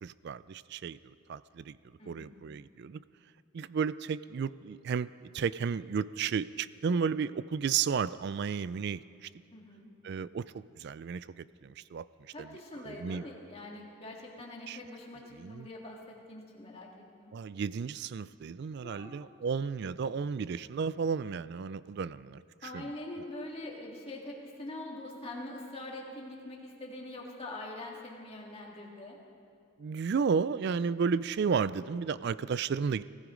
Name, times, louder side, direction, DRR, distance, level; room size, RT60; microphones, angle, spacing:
voice 1, 0.0-1.8 2.1-3.0 3.5-9.3 10.0-12.1 12.4-12.5 12.8-13.2 14.7-14.8 15.4-15.7 17.3-22.9 29.8-33.0, right 6 dB, 50° right, 17 dB, 0.3 m, -33 dB
voice 2, 2.0-2.4 9.5-9.9 12.3-15.2 15.5-16.9 17.2-17.3 18.8-19.1 19.8-19.9 22.6-29.2, left 1 dB, 25° left, -2 dB, 2.1 m, -44 dB
19.0 x 14.0 x 5.1 m, 2.4 s
head